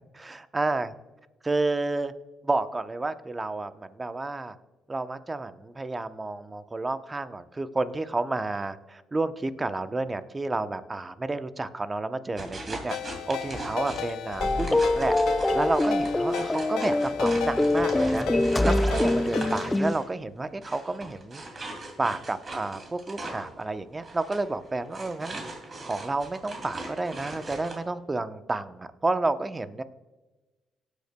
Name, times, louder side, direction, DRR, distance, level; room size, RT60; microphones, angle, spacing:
voice 1, 0.1-0.9 1.4-2.1 2.4-4.6 4.9-13.0 13.3-15.1 15.5-18.3 18.6-21.7 22.0-25.4 25.9-29.8, right 2 dB, 25° right, 11 dB, 0.8 m, -30 dB
sound 1, 12.4-20.1 20.6-27.8, right 2 dB, 40° right, 2.6 m, -40 dB
Ringtone, 12.9-19.8, left 11 dB, 80° left, 0.4 m, -36 dB
sound 2, 14.4-19.9, left 2 dB, 15° left, 0.4 m, -24 dB
18.0 x 8.2 x 2.2 m, 1.2 s
supercardioid pair, 60°, 0 cm